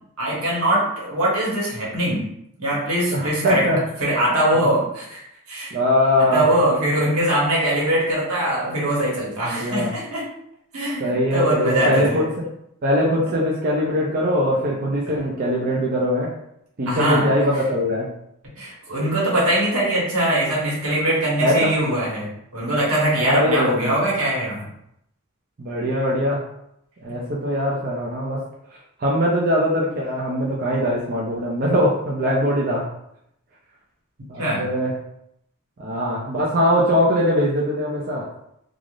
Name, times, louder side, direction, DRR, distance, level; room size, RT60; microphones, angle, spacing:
voice 1, 0.2-2.2 2.6-3.6 4.0-5.2 5.5-5.7 6.2-10.2 10.7-12.2 15.1-15.2 16.9-17.3 18.6-24.6 34.4-34.7, right 1 dB, 80° right, -5 dB, 1.3 m, -22 dB
voice 2, 3.1-3.8 5.7-6.5 9.5-9.9 11.0-12.5 12.8-16.3 16.8-18.1 21.4-21.7 23.2-24.0 25.6-26.4 27.0-28.4 28.7-32.9 34.3-35.0 35.8-38.3, equal, 40° right, -4 dB, 0.4 m, -21 dB
3.2 x 2.4 x 2.5 m, 0.77 s
head